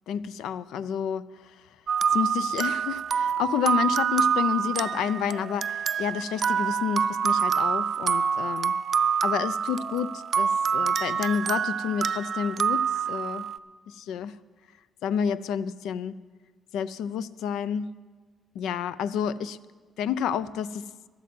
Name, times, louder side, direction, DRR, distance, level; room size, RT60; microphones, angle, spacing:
voice 1, 0.1-1.4 2.1-8.7 9.2-13.5 13.9-14.3 15.0-16.2 16.7-18.0 18.6-19.6 20.0-20.9, left 8 dB, 85° left, 0.4 m, -29 dB
sound 1, 1.9-13.6, right 7 dB, 50° right, 0.4 m, -26 dB
12.5 x 8.5 x 7.6 m
cardioid pair, 90°, 0 cm